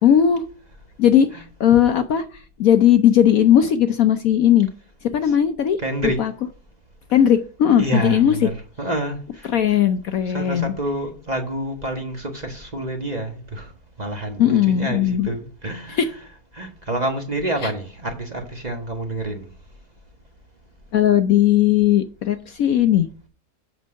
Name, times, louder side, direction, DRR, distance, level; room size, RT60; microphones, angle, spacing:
voice 1, 0.0-0.4 1.0-1.3 1.6-4.7 5.1-5.8 6.2-6.3 7.1-8.4 9.5-10.7 14.4-15.3 15.9-16.1 17.6-17.7 20.9-23.1, left 10 dB, 65° left, 1.0 m, -17 dB
voice 2, 5.8-6.2 7.8-8.5 8.8-9.5 10.2-13.7 14.0-16.2 16.5-19.5, right 1 dB, 25° right, 1.3 m, -28 dB
7.9 x 5.5 x 6.3 m
omnidirectional pair, 1.8 m